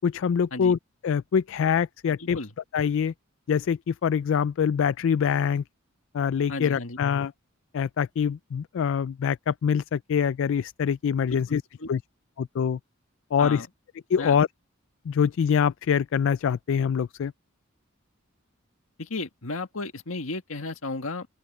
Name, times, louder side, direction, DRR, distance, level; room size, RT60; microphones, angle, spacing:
voice 1, 0.0-0.8 1.0-2.4 2.7-3.1 3.5-5.6 6.1-7.3 7.7-11.6 11.9-12.0 12.4-12.8 13.3-13.7 14.1-14.5 15.1-17.3, left 7 dB, 65° left, 0.3 m, -24 dB
voice 2, 2.2-2.5 6.5-7.0 11.2-11.9 13.4-13.7 14.2-14.4 19.0-21.3, left 3 dB, 80° left, 1.8 m, -34 dB
open air
head